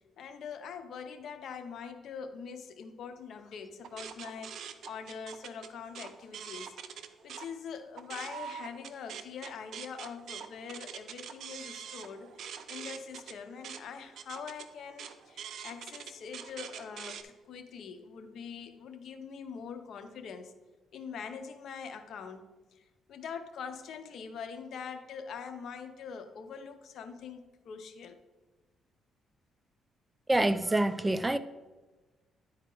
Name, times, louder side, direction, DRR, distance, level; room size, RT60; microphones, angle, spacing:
voice 1, 0.2-6.8 7.2-20.5 20.9-28.2, left 6 dB, 70° left, 0.7 m, -43 dB
sound 1, 3.8-7.5 7.9-17.2, right 8 dB, 70° right, 0.5 m, -44 dB
voice 2, 30.3-31.4, right 1 dB, 15° right, 0.3 m, -26 dB
10.5 x 4.3 x 3.9 m
cardioid pair, 90°, 0 cm